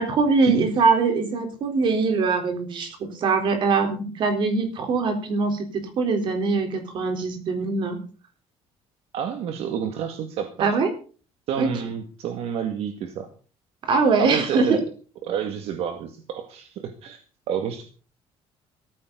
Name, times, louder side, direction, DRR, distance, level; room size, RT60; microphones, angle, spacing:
voice 1, 0.0-8.0 10.6-10.9 11.6-11.7 13.8-14.8, right 4 dB, 45° right, 6 dB, 3.8 m, -22 dB
voice 2, 9.1-10.7 11.5-13.3 14.2-14.8 15.2-17.2 17.5-17.9, right 8 dB, 65° right, 6 dB, 2.0 m, -29 dB
17.5 x 14.0 x 4.0 m, 0.38 s
cardioid pair, 170°, 11 cm